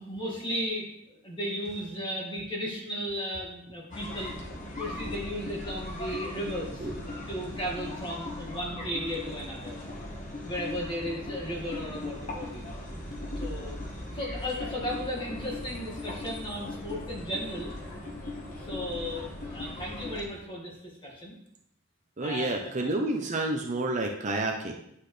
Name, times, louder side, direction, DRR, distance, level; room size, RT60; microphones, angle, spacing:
voice 1, 0.0-4.3 4.7-6.9 7.3-9.8 10.4-12.6 13.4-13.8 14.1-17.7 18.6-21.3 22.2-23.0, equal, 25° left, -3 dB, 1.9 m, -35 dB
sound 1, 3.9-20.2, left 1 dB, 40° left, 1.2 m, -38 dB
voice 2, 22.2-24.7, right 2 dB, 35° right, 2 dB, 0.6 m, -29 dB
9.7 x 4.2 x 3.3 m, 0.74 s
head